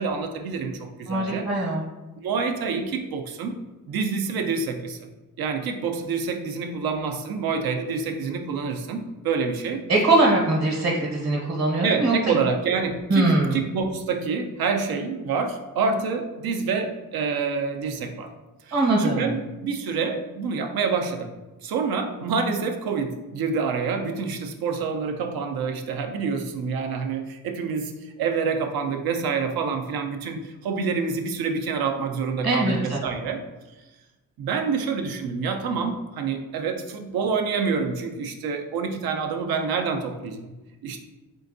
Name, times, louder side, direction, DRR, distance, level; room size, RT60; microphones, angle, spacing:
voice 1, 0.0-1.5 2.2-3.6 3.9-5.0 5.4-9.8 11.8-18.3 18.6-21.3 21.6-33.4 34.4-40.5 40.8-41.0, right 5 dB, 80° right, 5 dB, 0.6 m, -27 dB
voice 2, 1.1-1.8 9.9-12.4 13.1-13.6 18.7-19.3 32.4-33.0, right 2 dB, 40° right, -2 dB, 0.9 m, -22 dB
3.8 x 3.4 x 2.6 m, 1.1 s
cardioid pair, 70°, 35 cm